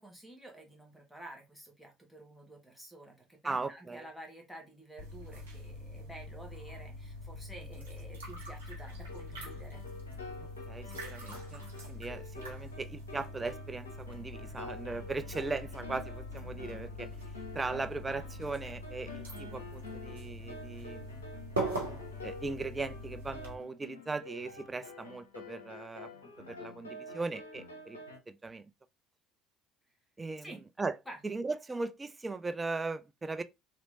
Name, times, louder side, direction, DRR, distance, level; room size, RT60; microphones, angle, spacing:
voice 1, 0.0-9.8 30.4-30.6 31.1-31.2, right 1 dB, 5° left, 1.4 m, -50 dB
voice 2, 3.4-4.1 10.7-17.1 17.5-21.1 22.2-26.1 26.4-28.0 28.3-28.7 30.2-31.0 31.2-33.4, right 3 dB, 20° right, 0.4 m, -38 dB
sound 1, 5.0-23.5, equal, 85° right, 1.0 m, -43 dB
sound 2, 9.0-28.2, left 3 dB, 85° left, 0.7 m, -48 dB
3.1 x 2.9 x 2.6 m
figure-of-eight pair, 60°, 0 cm